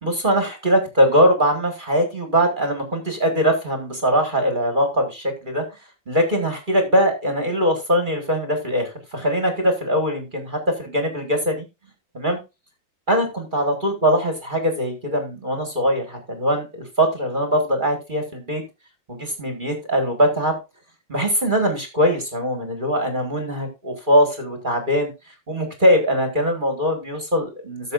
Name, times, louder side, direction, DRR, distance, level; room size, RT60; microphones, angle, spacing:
voice 1, 0.0-5.6 6.1-11.7 12.1-12.4 13.1-18.6 19.1-20.6 21.1-25.1 25.5-27.9, equal, 25° right, 5 dB, 1.8 m, -21 dB
13.5 x 7.0 x 2.5 m, 0.25 s
omnidirectional pair, 2.1 m